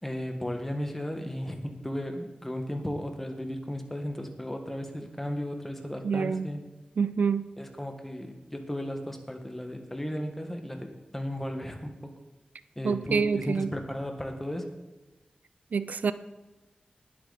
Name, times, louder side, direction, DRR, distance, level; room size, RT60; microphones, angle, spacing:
voice 1, 0.0-6.6 7.6-12.1 12.7-14.8, equal, 10° left, 4 dB, 1.6 m, -35 dB
voice 2, 6.0-6.5 7.0-7.5 12.8-13.7 15.7-16.1, right 5 dB, 75° right, 13 dB, 0.5 m, -27 dB
19.5 x 8.4 x 4.2 m, 1.1 s
wide cardioid pair, 115°, 3 cm